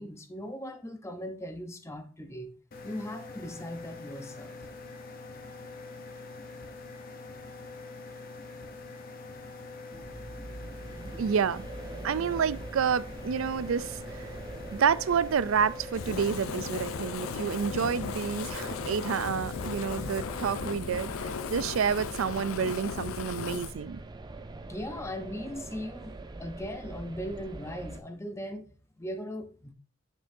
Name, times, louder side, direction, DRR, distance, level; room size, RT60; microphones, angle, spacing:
voice 1, 0.0-2.5 2.8-4.5 24.7-29.7, equal, 15° left, 0.8 m, -39 dB
sound 1, 2.7-20.7, left 3 dB, 45° left, 0.9 m, -44 dB
sound 2, 9.9-28.0, right 2 dB, 20° right, 0.5 m, -43 dB
voice 2, 11.2-11.6 12.0-14.3 14.7-24.0, right 7 dB, 80° right, 0.4 m, -29 dB
Fire, 15.9-23.7, left 6 dB, 85° left, 0.4 m, -37 dB
9.5 x 5.5 x 2.7 m
head